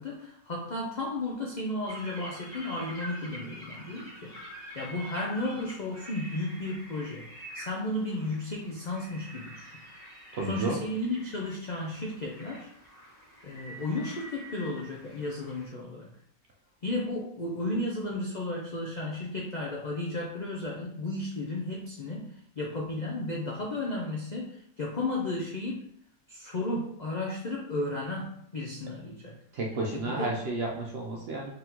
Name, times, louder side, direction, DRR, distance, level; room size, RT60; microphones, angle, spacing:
voice 1, 0.0-4.3 4.7-9.7 10.5-12.7 13.4-16.1 16.8-25.8 26.3-29.3 29.9-30.4, left 2 dB, 60° left, -2 dB, 0.4 m, -34 dB
sound 1, 1.9-15.7, equal, ahead, 1.4 m, -47 dB
voice 2, 10.3-10.8 29.5-31.5, right 2 dB, 60° right, -1 dB, 0.7 m, -32 dB
3.8 x 3.4 x 2.9 m, 0.69 s
omnidirectional pair, 1.6 m